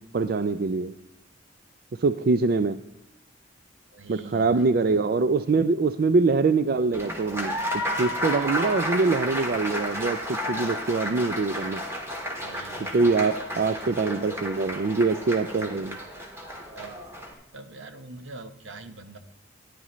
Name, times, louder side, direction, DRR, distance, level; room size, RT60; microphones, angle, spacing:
voice 1, 0.1-0.9 2.0-2.8 4.1-7.6 8.0-11.8 12.8-16.0, right 4 dB, 55° right, 12 dB, 0.4 m, -24 dB
voice 2, 3.9-4.6 12.4-13.0 16.8-17.0 17.5-19.2, right 2 dB, 90° right, 9 dB, 0.9 m, -43 dB
Applause, 6.9-17.3, equal, 15° right, 1.7 m, -32 dB
13.5 x 11.0 x 3.1 m, 0.87 s
head